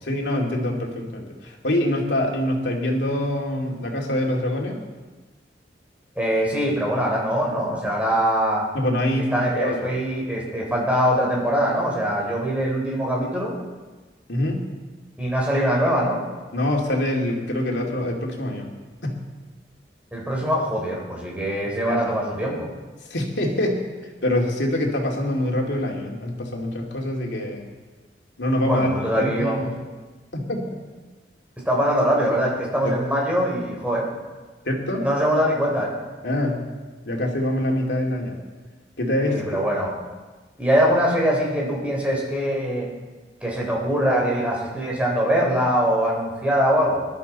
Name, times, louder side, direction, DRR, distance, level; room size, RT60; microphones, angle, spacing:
voice 1, 0.0-4.8 8.7-9.9 14.3-14.7 16.5-18.7 19.0-19.2 21.9-22.0 23.1-23.8 24.2-27.7 28.4-28.9 29.2-29.7 30.3-30.8 32.8-32.9 34.6-35.1 36.2-36.6 37.0-38.4 39.0-39.4, left 1 dB, 85° left, 0 dB, 2.6 m, -25 dB
voice 2, 6.1-8.7 9.1-13.5 15.2-16.2 20.1-22.7 28.6-29.6 31.6-34.1 35.0-35.9 39.2-39.9 40.6-42.9 43.4-47.0, equal, 10° right, -3 dB, 3.5 m, -22 dB
20.0 x 12.0 x 4.2 m, 1.3 s
head